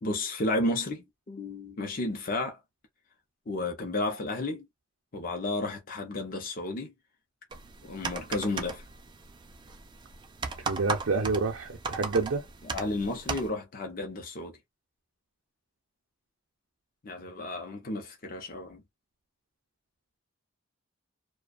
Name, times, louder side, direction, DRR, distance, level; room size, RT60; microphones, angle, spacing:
voice 1, 0.0-2.6 3.5-4.7 5.1-6.9 7.8-8.8 12.7-14.6 17.0-18.8, left 2 dB, 45° left, 0.6 m, -32 dB
sound 1, 7.5-13.5, right 4 dB, 20° right, 0.3 m, -37 dB
voice 2, 10.6-12.5, right 3 dB, 70° right, 0.6 m, -28 dB
2.4 x 2.2 x 2.4 m
head